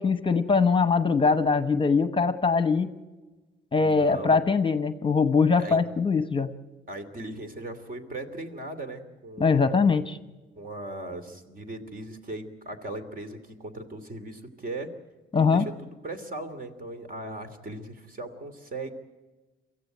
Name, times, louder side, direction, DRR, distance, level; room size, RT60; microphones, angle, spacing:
voice 1, 0.0-2.9 3.7-6.5 9.4-10.2 15.3-15.6, left 5 dB, 25° left, 10 dB, 1.0 m, -22 dB
voice 2, 3.8-4.4 5.6-5.8 6.9-10.0 10.6-14.9 15.3-18.9, right 2 dB, 45° right, 9 dB, 2.7 m, -38 dB
23.5 x 15.0 x 9.1 m, 1.2 s
cardioid pair, 90°, 20 cm